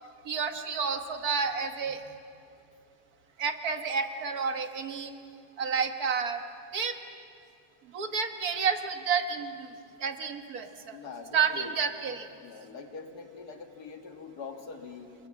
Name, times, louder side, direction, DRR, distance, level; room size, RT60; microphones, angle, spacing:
voice 1, 0.3-2.0 3.4-5.1 5.6-6.4 6.7-7.0 7.9-9.7 10.0-11.0 11.3-12.3, right 6 dB, 70° right, 7 dB, 1.9 m, -30 dB
voice 2, 10.9-11.7 12.4-15.3, left 5 dB, 80° left, 5 dB, 2.2 m, -44 dB
29.0 x 21.0 x 7.6 m, 2.4 s
omnidirectional pair, 1.7 m